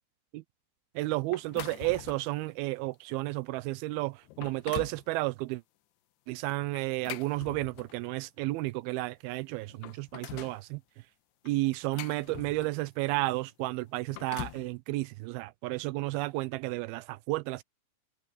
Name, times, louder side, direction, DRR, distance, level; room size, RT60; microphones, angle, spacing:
voice 1, 1.0-5.6 6.3-10.8 11.5-17.6, right 20 dB, 85° right, 2.2 m, -32 dB
sound 1, 1.3-2.4 2.9-3.1 3.7-3.8 4.2-5.1 6.8-8.1 9.1-9.2 9.6-10.6 11.5-12.9 13.9-14.7, left 15 dB, 85° left, 2.8 m, -43 dB
omnidirectional pair, 4.8 m